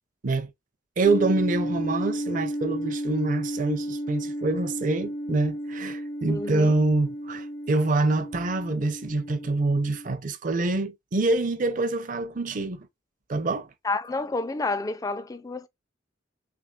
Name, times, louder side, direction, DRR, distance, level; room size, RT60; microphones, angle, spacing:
sound 1, 1.0-10.1, equal, 55° left, 0.7 m, -33 dB
voice 1, 1.0-12.9 13.3-13.7, right 2 dB, 40° right, 0.5 m, -26 dB
voice 2, 6.3-6.7 13.8-15.7, left 3 dB, 20° left, 0.3 m, -29 dB
3.4 x 3.4 x 2.4 m
head